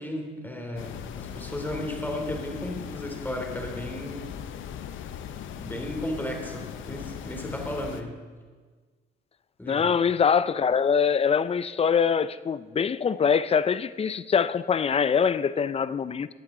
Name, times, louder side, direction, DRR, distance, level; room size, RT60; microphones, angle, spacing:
voice 1, 0.0-4.4 5.5-8.2 9.6-10.0, left 1 dB, 10° left, 3.1 m, -34 dB
sound 1, 0.8-8.0, left 9 dB, 75° left, 0.7 m, -39 dB
voice 2, 9.7-16.3, left 6 dB, 30° left, 0.5 m, -24 dB
21.0 x 8.5 x 3.9 m
cardioid pair, 90°, 20 cm